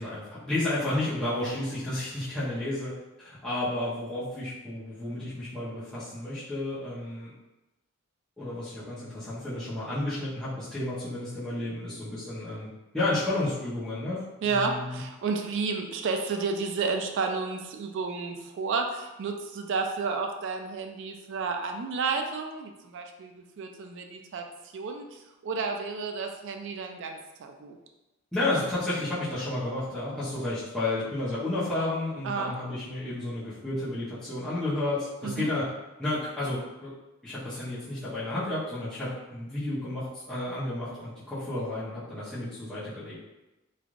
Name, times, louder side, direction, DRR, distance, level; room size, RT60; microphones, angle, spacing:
voice 1, 0.0-7.3 8.4-15.0 28.3-35.7 36.0-36.9 37.2-43.2, left 2 dB, 5° left, -13 dB, 0.8 m, -32 dB
voice 2, 14.4-24.4 24.7-27.8 32.2-32.6 35.2-35.5, right 4 dB, 60° right, 4 dB, 0.3 m, -31 dB
3.1 x 2.5 x 2.5 m, 1.0 s
head